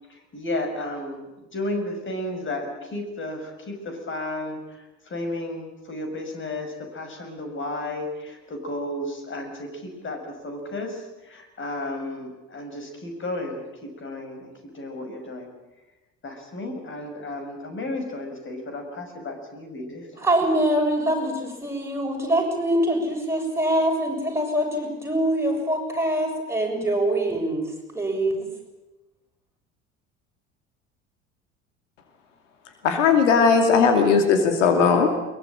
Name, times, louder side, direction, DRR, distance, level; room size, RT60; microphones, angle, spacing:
voice 1, 0.3-4.6 5.1-15.5 16.2-20.1, left 1 dB, 30° left, 5 dB, 6.1 m, -33 dB
voice 2, 20.2-28.5, right 1 dB, 5° right, 1 dB, 7.1 m, -24 dB
voice 3, 32.8-35.1, left 5 dB, 65° left, 5 dB, 2.8 m, -18 dB
22.5 x 21.5 x 8.9 m, 1.0 s
figure-of-eight pair, 65°, 38 cm